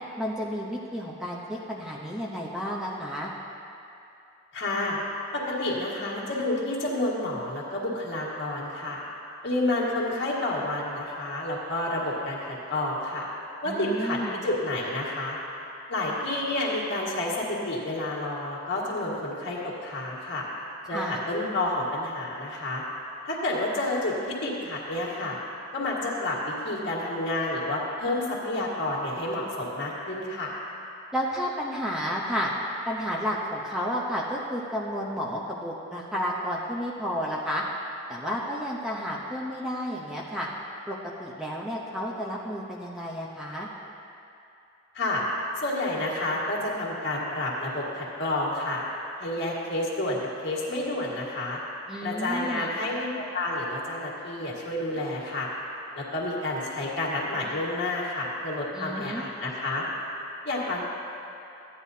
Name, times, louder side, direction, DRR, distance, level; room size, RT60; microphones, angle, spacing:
voice 1, 0.2-3.3 13.7-14.4 20.9-21.2 31.1-32.5 32.9-37.6 38.1-40.5 40.9-43.7 51.9-52.7 58.7-59.2, equal, 5° right, -5 dB, 0.7 m, -31 dB
voice 2, 4.5-5.0 5.3-9.0 9.4-13.3 13.6-15.4 15.9-20.4 20.9-22.8 23.3-25.4 25.7-30.5 44.9-45.2 45.6-48.8 49.2-51.6 52.0-55.5 56.0-59.8 60.5-60.8, left 1 dB, 60° left, -4 dB, 1.9 m, -29 dB
14.5 x 10.0 x 2.8 m, 2.8 s
head